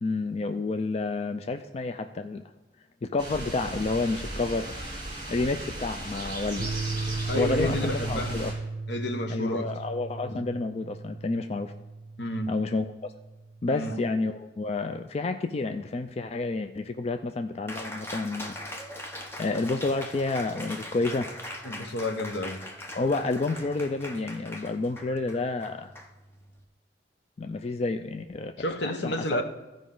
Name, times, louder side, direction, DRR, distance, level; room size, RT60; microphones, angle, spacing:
voice 1, 0.0-2.4 3.0-4.8 5.3-6.7 7.4-8.5 9.3-11.7 12.5-13.1 13.6-18.5 19.4-21.3 22.9-25.9 27.4-28.5 28.8-29.4, left 3 dB, 35° left, 7 dB, 0.4 m, -30 dB
sound 1, 3.2-8.5, right 1 dB, 25° right, 2.8 m, -36 dB
sound 2, 6.6-13.6, right 3 dB, 75° right, 0.5 m, -36 dB
voice 2, 7.3-8.4 8.9-9.7 10.3-10.4 12.2-12.5 13.7-13.9 21.6-22.6 28.6-29.4, left 1 dB, 80° left, 6 dB, 1.0 m, -30 dB
Cheering, 17.7-26.6, left 1 dB, 15° left, 0.8 m, -41 dB
14.5 x 5.1 x 3.8 m, 1.1 s
head